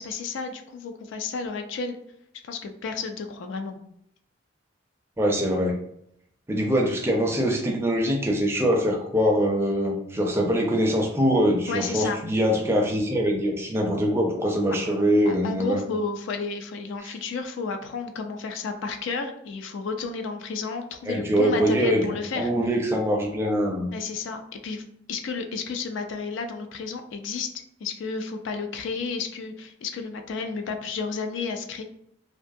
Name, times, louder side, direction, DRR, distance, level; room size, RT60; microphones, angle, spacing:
voice 1, 0.0-2.0 2.4-3.8 11.7-12.2 14.9-15.0 15.2-22.5 23.9-24.8 25.1-27.5 27.8-31.8, left 4 dB, 70° left, 7 dB, 0.3 m, -32 dB
voice 2, 5.2-5.7 6.5-15.8 17.0-17.1 21.0-23.9, equal, 15° right, 0 dB, 0.4 m, -23 dB
2.5 x 2.3 x 2.6 m, 0.73 s
head